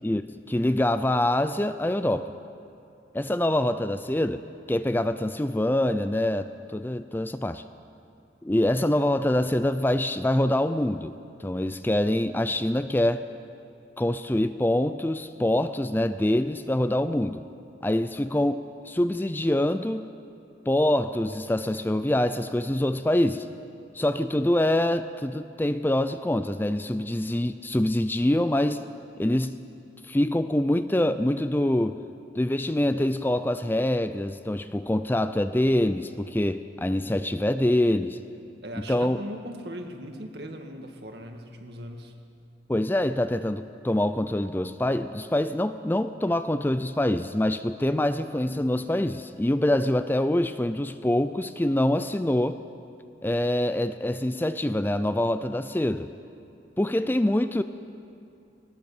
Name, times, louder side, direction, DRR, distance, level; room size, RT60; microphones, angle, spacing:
voice 1, 0.0-2.3 3.1-4.4 4.7-7.6 8.4-11.1 11.4-13.2 14.0-17.4 17.8-20.1 20.7-23.5 23.9-28.9 29.2-29.6 30.0-32.0 32.3-38.2 38.9-39.2 42.7-52.6 53.2-56.1 56.8-57.6, left 1 dB, 10° left, 11 dB, 0.4 m, -25 dB
voice 2, 38.6-42.2, equal, 65° right, 4 dB, 2.0 m, -39 dB
20.0 x 19.5 x 7.2 m, 2.6 s
head